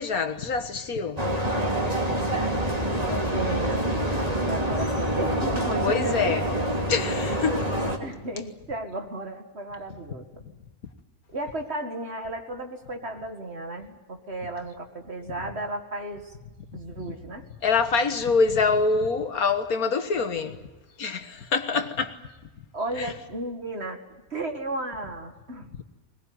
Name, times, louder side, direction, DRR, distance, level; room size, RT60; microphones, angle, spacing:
voice 1, 0.0-1.8 5.8-6.4 6.9-7.7 17.6-20.6 21.0-22.2 23.0-23.1, left 4 dB, 80° left, 1.9 m, -25 dB
sound 1, 1.2-8.0, right 1 dB, 25° right, 2.8 m, -26 dB
voice 2, 2.0-6.9 8.0-10.4 11.3-16.4 16.7-17.5 21.7-21.9 22.7-24.0 24.3-25.8, right 1 dB, 45° right, 2.3 m, -34 dB
21.0 x 21.0 x 9.5 m
omnidirectional pair, 1.5 m